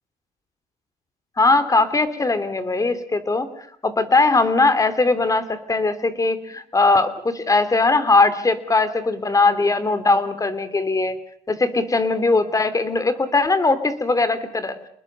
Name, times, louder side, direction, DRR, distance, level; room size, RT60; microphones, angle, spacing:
voice 1, 1.4-3.5 3.8-11.2 11.5-14.8, left 3 dB, 20° left, 13 dB, 3.0 m, -20 dB
28.5 x 20.5 x 6.8 m, 0.66 s
cardioid pair, 110°, 17 cm